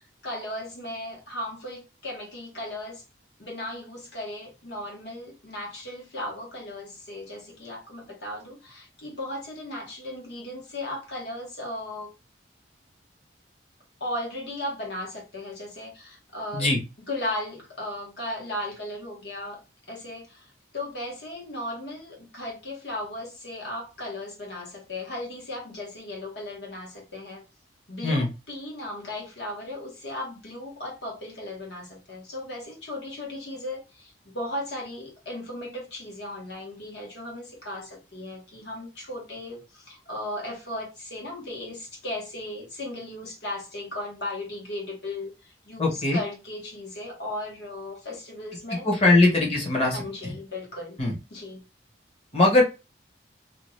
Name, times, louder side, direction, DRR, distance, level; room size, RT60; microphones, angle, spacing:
voice 1, 0.0-3.0 3.4-12.1 14.0-16.7 17.1-19.6 19.9-27.4 27.9-48.9 49.9-51.0 51.3-51.6, left 1 dB, 65° left, 1.4 m, -36 dB
voice 2, 45.8-46.2 48.8-50.0 50.2-50.4 51.0-51.2 52.3-52.6, left 2 dB, 30° left, 1.1 m, -20 dB
2.8 x 2.4 x 3.1 m
head